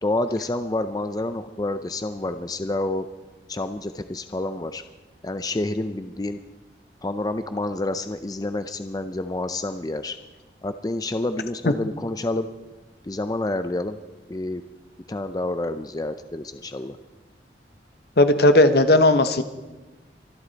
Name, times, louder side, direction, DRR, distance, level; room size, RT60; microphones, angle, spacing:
voice 1, 0.0-3.1 3.5-4.8 5.2-6.4 7.0-10.2 10.6-12.5 13.1-14.0 14.3-14.6 15.1-17.0, left 2 dB, 20° left, 10 dB, 0.5 m, -28 dB
voice 2, 18.2-19.4, left 1 dB, 60° left, 10 dB, 1.0 m, -16 dB
24.5 x 11.5 x 4.1 m, 1.2 s
head